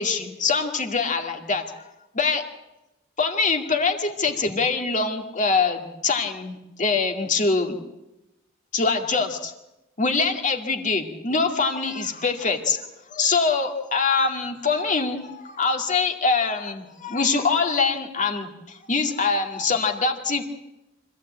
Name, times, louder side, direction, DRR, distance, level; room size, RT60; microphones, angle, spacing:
voice 1, 0.0-1.6 2.1-2.4 3.2-7.8 8.7-9.5 10.0-20.4, left 4 dB, 40° left, 3 dB, 2.2 m, -24 dB
25.0 x 15.0 x 8.7 m, 0.97 s
head